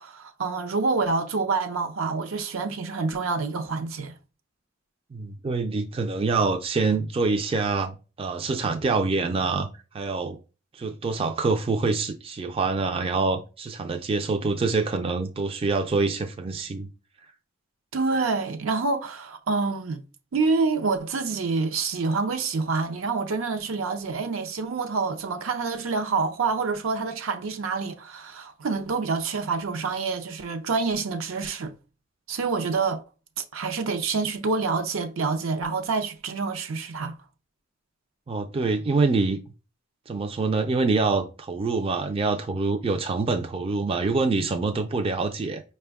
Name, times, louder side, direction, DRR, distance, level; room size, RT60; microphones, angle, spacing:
voice 1, 0.0-4.1 17.9-20.0 20.3-31.7 32.3-33.0 33.5-37.1, right 4 dB, 75° right, 0.6 m, -27 dB
voice 2, 5.1-9.7 9.9-10.4 10.7-16.9 38.3-39.4 40.1-45.6, right 3 dB, 25° right, 0.3 m, -25 dB
5.0 x 2.2 x 3.4 m
head